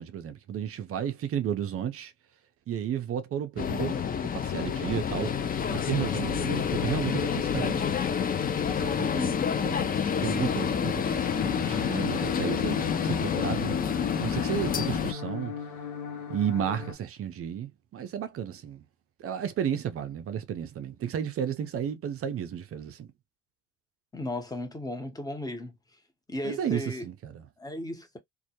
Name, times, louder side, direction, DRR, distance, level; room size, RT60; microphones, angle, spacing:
voice 1, 0.0-2.1 2.7-4.0 4.3-5.3 5.7-7.9 8.7-9.1 9.6-13.7 14.2-15.5 16.3-18.8 19.2-23.1 26.4-27.4, right 9 dB, 40° right, 0.5 m, -33 dB
sound 1, 3.6-15.1, left 7 dB, 25° left, 0.4 m, -28 dB
voice 2, 9.1-9.5 24.1-25.8 26.3-27.1 27.6-28.2, left 1 dB, 10° left, 0.8 m, -35 dB
sound 2, 11.2-16.9, left 7 dB, 75° left, 0.8 m, -38 dB
2.2 x 2.0 x 2.7 m
supercardioid pair, 75°, 36 cm